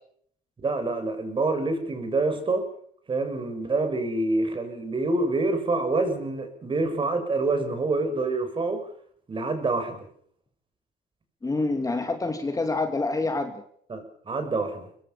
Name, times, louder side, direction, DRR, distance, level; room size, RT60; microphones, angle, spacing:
voice 1, 0.6-2.7 3.1-8.8 9.3-10.1 13.9-14.9, right 3 dB, 30° right, 7 dB, 6.4 m, -26 dB
voice 2, 11.4-13.6, left 3 dB, 20° left, 6 dB, 2.7 m, -27 dB
24.5 x 20.5 x 7.1 m, 0.63 s
cardioid pair, 110°, 17 cm